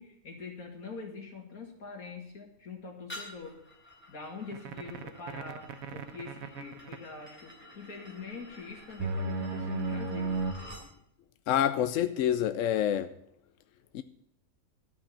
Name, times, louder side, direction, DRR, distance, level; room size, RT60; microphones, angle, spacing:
voice 1, 0.0-3.6 4.1-10.3, left 4 dB, 85° left, 2.7 m, -44 dB
sound 1, 3.1-10.9, left 1 dB, 10° left, 3.0 m, -50 dB
sound 2, 4.5-7.0 9.0-10.5, right 3 dB, 80° right, 1.3 m, -34 dB
voice 2, 11.5-13.1 13.9-14.0, left 10 dB, 70° left, 0.9 m, -27 dB
13.0 x 6.1 x 8.4 m
omnidirectional pair, 1.5 m